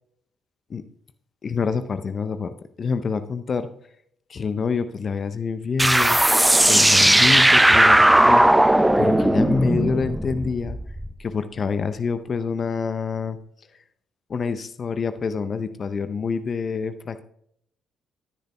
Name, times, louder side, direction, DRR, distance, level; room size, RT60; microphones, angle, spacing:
voice 1, 1.4-3.7 4.3-6.2 6.6-8.4 9.0-10.8 11.2-13.4 14.3-17.2, left 5 dB, 45° left, 11 dB, 0.6 m, -27 dB
sound 1, 5.8-11.1, right 1 dB, 10° right, 0.6 m, -17 dB
18.5 x 10.0 x 2.2 m, 0.69 s
figure-of-eight pair, 45°, 0 cm